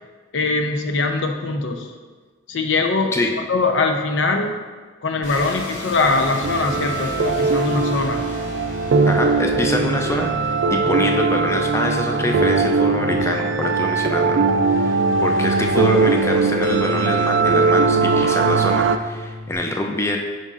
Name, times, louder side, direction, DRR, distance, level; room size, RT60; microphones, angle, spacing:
voice 1, 0.3-1.9 2.5-4.5 5.0-8.2, left 3 dB, 80° left, 4 dB, 0.6 m, -22 dB
sound 1, 5.2-19.6, left 2 dB, 40° left, 1.6 m, -34 dB
sound 2, 6.4-19.0, right 4 dB, 85° right, 0.4 m, -20 dB
voice 2, 9.1-20.2, left 1 dB, 15° left, 2 dB, 0.4 m, -25 dB
9.3 x 5.4 x 2.5 m, 1.4 s
head